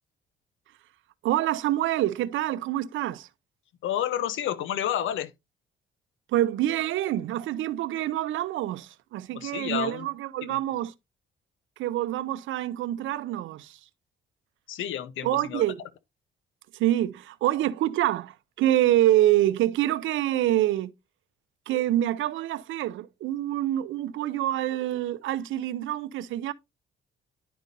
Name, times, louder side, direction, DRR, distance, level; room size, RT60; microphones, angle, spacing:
voice 1, 1.2-3.3 6.3-10.9 11.8-13.8 15.2-15.8 16.7-20.9 21.7-26.5, right 13 dB, 80° right, 0.6 m, -26 dB
voice 2, 3.8-5.3 9.3-10.1 10.4-10.6 14.7-15.6, left 10 dB, 80° left, 0.9 m, -30 dB
10.5 x 5.2 x 2.6 m
cardioid pair, 90°, 20 cm